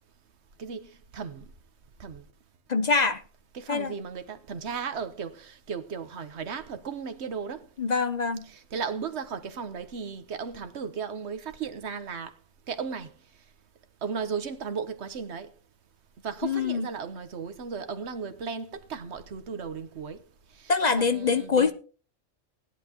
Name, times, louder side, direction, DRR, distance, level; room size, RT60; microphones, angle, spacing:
voice 1, 0.6-1.5 2.0-2.2 3.5-7.7 8.4-12.4 12.7-13.1 14.0-15.5 16.2-20.2 20.5-20.7 21.0-21.7, right 6 dB, 60° right, 1.3 m, -35 dB
voice 2, 2.7-3.2 3.7-3.9 7.8-8.5 16.4-16.9 20.7-21.7, left 5 dB, 45° left, 0.6 m, -24 dB
17.5 x 10.5 x 3.0 m
omnidirectional pair, 1.3 m